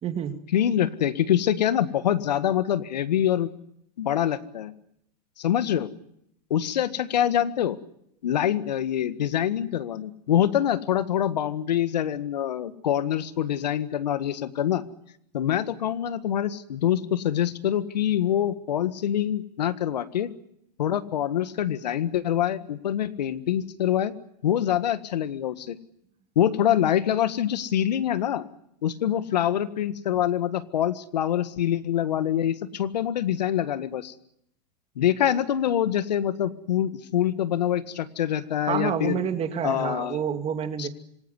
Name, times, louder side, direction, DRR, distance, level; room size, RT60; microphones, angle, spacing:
voice 1, 0.0-0.3 38.7-40.9, right 8 dB, 30° right, 7 dB, 2.6 m, -28 dB
voice 2, 0.5-3.5 4.0-4.7 5.4-5.9 6.5-7.8 8.2-14.8 15.3-20.3 20.8-24.1 24.4-25.8 26.3-28.4 28.8-34.1 34.9-39.2 39.6-40.2 40.8-40.9, left 10 dB, 80° left, 12 dB, 1.7 m, -25 dB
26.5 x 18.0 x 9.7 m, 0.75 s
hypercardioid pair, 110°, 21 cm